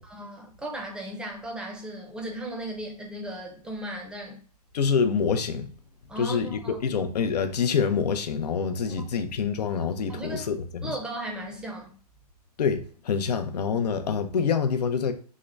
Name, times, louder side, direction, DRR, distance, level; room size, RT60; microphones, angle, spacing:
voice 1, 0.0-4.4 6.1-6.8 10.1-10.4 10.8-11.9, right 1 dB, 5° right, 0.6 m, -36 dB
voice 2, 4.7-5.7 6.2-10.9 12.6-15.1, left 6 dB, 80° left, 0.6 m, -26 dB
3.7 x 2.1 x 3.3 m
hypercardioid pair, 140°, 20 cm